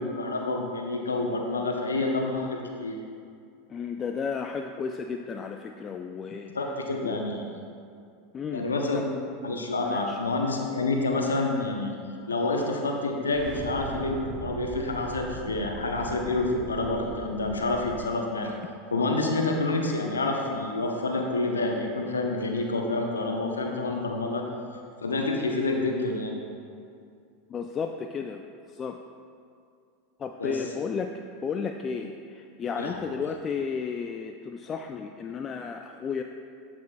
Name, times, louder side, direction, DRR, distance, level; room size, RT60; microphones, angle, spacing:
voice 1, 0.0-3.0 6.5-7.5 8.5-9.1 9.4-11.9 12.3-18.5 18.9-24.4 25.0-26.4 30.4-30.5 32.7-33.0, left 2 dB, 80° left, 2 dB, 0.7 m, -28 dB
voice 2, 3.7-6.6 7.0-7.2 8.3-9.1 9.8-10.2 27.5-28.4 28.7-29.0 30.2-31.1 31.4-36.2, left 6 dB, 30° left, 5 dB, 0.3 m, -33 dB
sound 1, 13.3-18.1, right 5 dB, 45° right, 0.4 m, -40 dB
11.5 x 6.1 x 2.3 m, 2.3 s
figure-of-eight pair, 85°, 0 cm